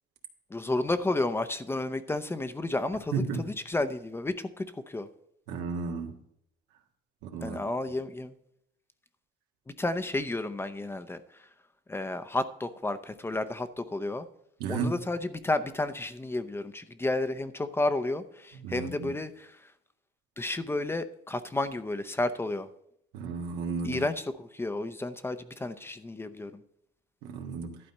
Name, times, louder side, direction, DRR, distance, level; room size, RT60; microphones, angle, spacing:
voice 1, 0.5-5.1 7.4-8.3 9.7-11.2 11.9-14.3 14.7-19.7 20.4-22.7 23.8-26.6, left 2 dB, 15° left, 0.6 m, -32 dB
voice 2, 3.1-3.4 5.5-6.2 7.2-7.6 14.6-15.0 18.6-19.1 23.1-24.0 27.2-27.8, right 5 dB, 90° right, 1.6 m, -33 dB
12.0 x 4.2 x 7.9 m
cardioid pair, 110°, 17 cm